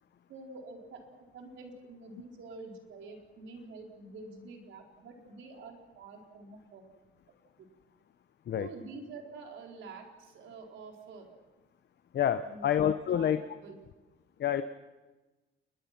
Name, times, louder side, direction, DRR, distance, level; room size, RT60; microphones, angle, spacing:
voice 1, 0.3-1.0 1.3-6.8 7.6-7.7 8.5-11.3 12.4-13.8, right 3 dB, 75° right, 1 dB, 4.4 m, -47 dB
voice 2, 12.1-13.4 14.4-14.6, left 9 dB, 60° left, 10 dB, 1.0 m, -27 dB
28.5 x 21.5 x 6.0 m, 1.2 s
cardioid pair, 90°, 20 cm